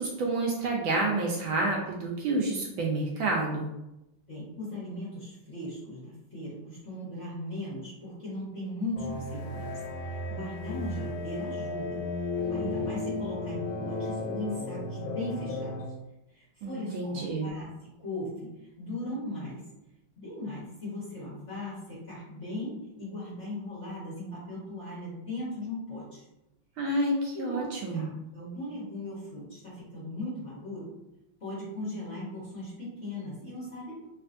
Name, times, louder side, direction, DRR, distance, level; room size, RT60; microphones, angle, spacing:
voice 1, 0.0-3.7 16.6-17.5 26.8-28.1, right 2 dB, 75° right, 0 dB, 1.2 m, -29 dB
voice 2, 4.3-9.7 10.0-15.8 16.3-17.7 18.0-18.5 18.8-19.6 20.2-26.2 27.3-30.9 31.4-34.1, left 1 dB, 45° left, -8 dB, 1.0 m, -38 dB
sound 1, 9.0-15.9, left 2 dB, 75° left, 1.1 m, -34 dB
3.3 x 2.8 x 2.5 m, 0.91 s
omnidirectional pair, 2.3 m